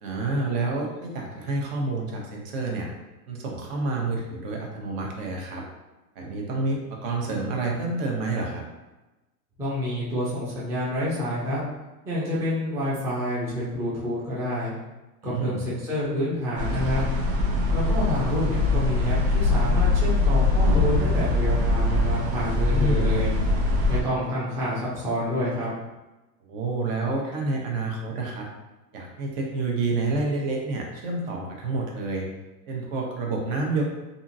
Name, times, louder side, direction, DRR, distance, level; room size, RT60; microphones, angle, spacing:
voice 1, 0.0-2.9 3.3-5.6 6.2-8.6 15.2-15.7 22.7-23.1 26.5-28.5 28.9-32.3 32.7-33.8, right 3 dB, 50° right, 0 dB, 0.9 m, -28 dB
voice 2, 9.6-11.6 12.1-14.7 15.2-17.0 17.7-23.3 23.9-25.7, equal, 5° right, -9 dB, 0.4 m, -28 dB
sound 1, 16.6-24.0, left 2 dB, 85° right, 0.9 m, -22 dB
2.7 x 2.5 x 2.6 m, 1.1 s
hypercardioid pair, 115°, 49 cm